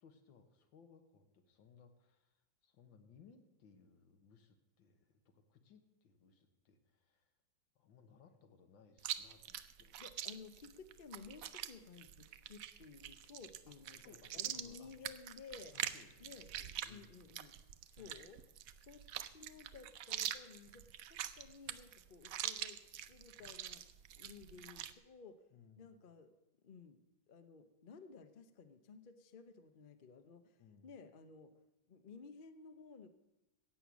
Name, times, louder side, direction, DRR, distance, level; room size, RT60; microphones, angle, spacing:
voice 1, 0.0-7.3 7.8-10.0 13.7-14.9 15.7-16.4 16.8-17.2 18.0-18.3 25.5-26.0 30.6-30.9, left 6 dB, 80° left, 7 dB, 2.0 m, -64 dB
Chewing mastication, 9.0-24.9, right 11 dB, 70° right, 0.8 m, -45 dB
voice 2, 10.0-15.7 16.2-17.6 17.9-18.4 18.8-19.0 19.3-23.8 24.2-25.5 25.8-26.3 26.6-31.5 31.9-33.1, left 5 dB, 45° left, 9 dB, 0.6 m, -56 dB
15.5 x 8.7 x 6.2 m, 0.98 s
omnidirectional pair, 2.1 m